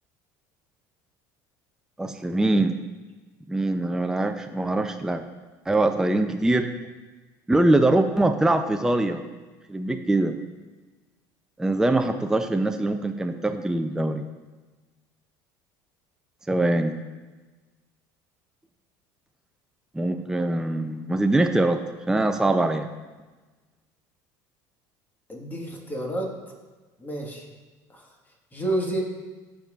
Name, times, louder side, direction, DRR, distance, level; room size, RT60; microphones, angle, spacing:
voice 1, 2.0-2.7 3.5-5.2 5.7-6.7 7.5-9.2 9.7-10.4 11.6-14.3 16.5-17.0 19.9-22.9, right 2 dB, 5° right, 6 dB, 0.5 m, -23 dB
voice 2, 25.3-26.3 27.0-27.5 27.9-28.1 28.5-29.0, right 1 dB, 20° left, 0 dB, 1.6 m, -29 dB
11.5 x 7.3 x 2.4 m, 1.3 s
supercardioid pair, 95°, 9 cm